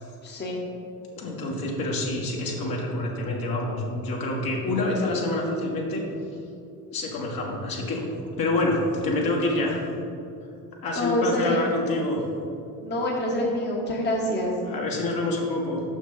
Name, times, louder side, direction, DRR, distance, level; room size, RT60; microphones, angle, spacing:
voice 1, 0.2-0.6 10.9-11.6 12.8-14.5, left 1 dB, 20° left, -2 dB, 1.2 m, -26 dB
voice 2, 1.2-6.0 6.9-8.0 8.4-9.8 10.8-12.2 14.6-15.8, left 2 dB, 45° left, -1 dB, 1.6 m, -27 dB
6.3 x 6.1 x 4.0 m, 2.6 s
hypercardioid pair, 65°, 47 cm